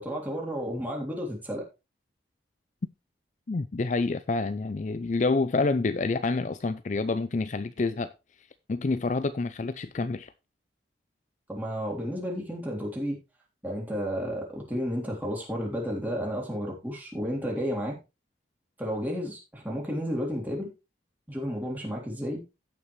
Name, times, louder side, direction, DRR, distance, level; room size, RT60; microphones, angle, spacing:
voice 1, 0.0-1.6 11.5-13.2 13.6-18.0 18.8-20.7 21.3-22.4, equal, 10° right, 3.3 m, -32 dB
voice 2, 3.5-8.1 8.7-10.3, left 3 dB, 40° left, 0.4 m, -28 dB
16.0 x 5.9 x 3.2 m
head